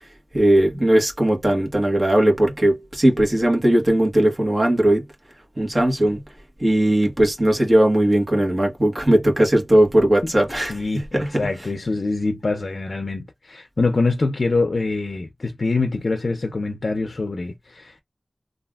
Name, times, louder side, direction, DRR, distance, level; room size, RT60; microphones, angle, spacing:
voice 1, 0.3-5.0 5.6-6.2 6.6-11.4, right 1 dB, 30° right, 1.2 m, -18 dB
voice 2, 10.7-18.0, left 3 dB, 65° left, 0.5 m, -24 dB
3.3 x 2.4 x 2.3 m
wide cardioid pair, 75°, 0 cm